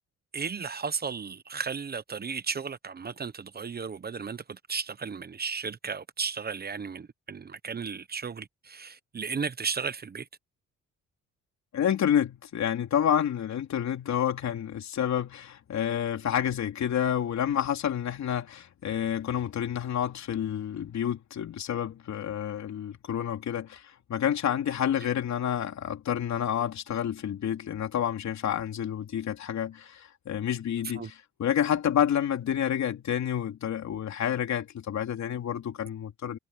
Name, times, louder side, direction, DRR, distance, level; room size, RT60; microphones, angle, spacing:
voice 1, 0.3-10.3 25.0-25.1 31.0-31.1, right 5 dB, 30° right, 1.0 m, -34 dB
voice 2, 11.7-23.8 24.1-31.1 31.4-36.4, left 9 dB, 65° left, 3.5 m, -29 dB
cardioid pair, 90°, 30 cm